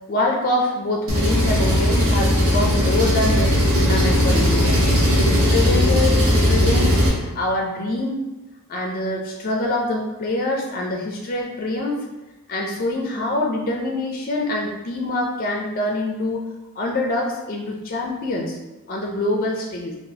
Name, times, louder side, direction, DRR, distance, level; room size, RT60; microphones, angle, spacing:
voice 1, 0.1-4.8 5.1-8.3 8.7-12.0 12.5-16.4 16.8-18.6 18.9-20.0, left 2 dB, 40° left, 0 dB, 0.4 m, -25 dB
Engine, 1.1-7.1, equal, 65° right, 0.9 m, -18 dB
3.9 x 2.4 x 2.7 m, 1.1 s
head